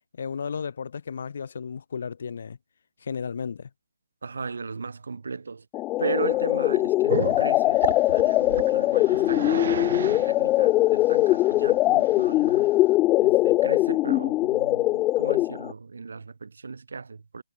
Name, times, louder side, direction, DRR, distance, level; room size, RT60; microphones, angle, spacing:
voice 1, 0.2-2.6 3.0-3.7, left 6 dB, 60° left, 1.2 m, -33 dB
voice 2, 4.2-5.6 6.0-12.7 13.2-17.4, right 4 dB, 70° right, 1.0 m, -36 dB
sound 1, 5.7-15.7, left 17 dB, 20° left, 0.4 m, -22 dB
Growling, 7.1-12.9, right 7 dB, 50° right, 1.2 m, -34 dB
figure-of-eight pair, 145°, 0 cm